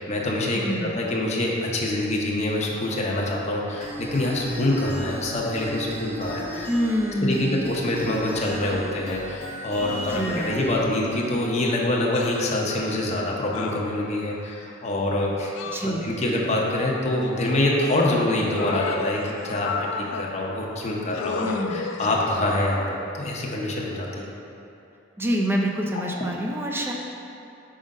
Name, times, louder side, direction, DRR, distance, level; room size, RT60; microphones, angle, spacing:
voice 1, 0.0-6.7 7.2-15.5 15.8-24.3, left 1 dB, 35° left, -3 dB, 0.7 m, -25 dB
voice 2, 0.5-1.0 6.7-7.7 10.1-10.6 15.7-16.1 21.4-22.1 25.2-26.9, equal, 10° right, 0 dB, 0.5 m, -27 dB
sound 1, 3.8-10.8, right 1 dB, 70° right, 1.4 m, -36 dB
sound 2, 12.1-12.6 13.5-14.5 15.5-16.4 17.2-18.1 18.5-20.3 21.1-22.6 23.7-23.9, left 5 dB, 75° left, 0.3 m, -34 dB
4.9 x 3.8 x 5.3 m, 2.8 s
head